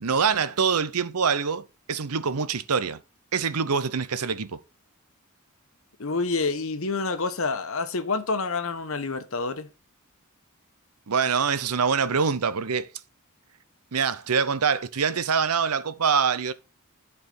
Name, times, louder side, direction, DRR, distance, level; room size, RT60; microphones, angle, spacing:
voice 1, 0.0-3.0 3.3-4.6 11.1-12.9 13.9-16.5, right 6 dB, 90° right, 0.8 m, -25 dB
voice 2, 6.0-9.7, left 3 dB, 65° left, 1.0 m, -28 dB
11.5 x 4.8 x 4.0 m
head